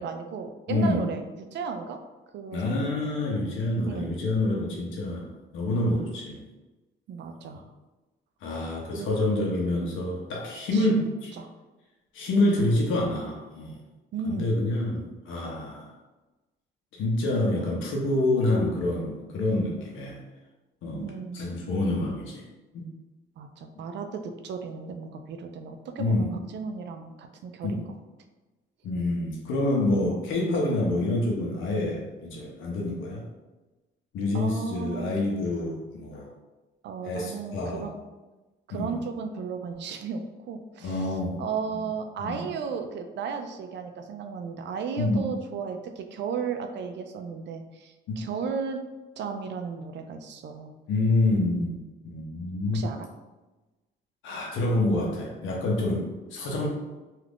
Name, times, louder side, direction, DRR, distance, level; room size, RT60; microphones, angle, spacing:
voice 1, 0.0-2.0 2.3-2.9 3.8-4.1 7.1-7.7 9.0-9.3 10.7-11.1 11.3-11.5 14.1-14.5 17.6-17.7 21.0-21.5 23.4-27.9 34.3-35.1 36.8-38.0 38.7-48.8 49.2-50.7 52.7-53.1, right 6 dB, 65° right, 6 dB, 0.4 m, -35 dB
voice 2, 0.7-1.0 2.5-5.3 5.5-6.4 8.4-11.3 12.1-13.8 14.3-15.9 16.9-20.2 20.8-22.4 22.7-22.8 26.0-26.3 27.6-27.8 28.8-33.2 34.1-36.3 37.0-37.8 38.7-39.0 40.8-41.4 41.7-41.8 42.2-42.5 45.0-45.2 48.1-48.2 50.9-51.8 52.0-52.9 54.2-56.7, left 2 dB, 80° left, -2 dB, 0.7 m, -27 dB
2.4 x 2.4 x 3.4 m, 1.1 s
cardioid pair, 90°, 20 cm